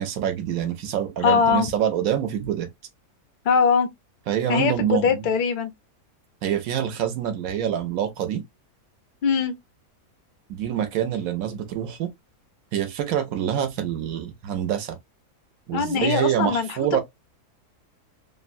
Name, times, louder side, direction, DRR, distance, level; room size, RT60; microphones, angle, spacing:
voice 1, 0.0-2.7 4.3-5.3 6.4-8.4 10.5-12.1 12.7-15.0 15.7-17.0, right 10 dB, 75° right, 1.0 m, -26 dB
voice 2, 1.2-1.7 3.4-3.9 4.5-5.7 9.2-9.5 15.7-16.7, left 5 dB, 80° left, 0.4 m, -21 dB
2.9 x 2.1 x 2.5 m
omnidirectional pair, 1.6 m